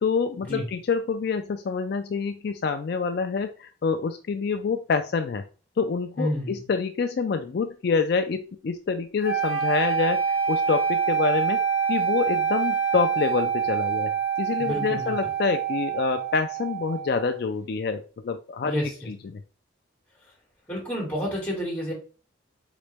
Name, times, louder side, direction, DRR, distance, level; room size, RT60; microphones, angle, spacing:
voice 1, 0.0-5.4 5.8-11.6 11.9-18.8 19.1-19.4, left 5 dB, 55° left, 7 dB, 0.3 m, -27 dB
voice 2, 6.2-6.7 14.6-15.2 18.6-18.9 20.7-21.9, equal, 10° left, -4 dB, 2.5 m, -29 dB
sound 1, 9.2-17.3, right 7 dB, 40° right, 2.2 m, -26 dB
4.0 x 3.7 x 3.4 m, 0.37 s
head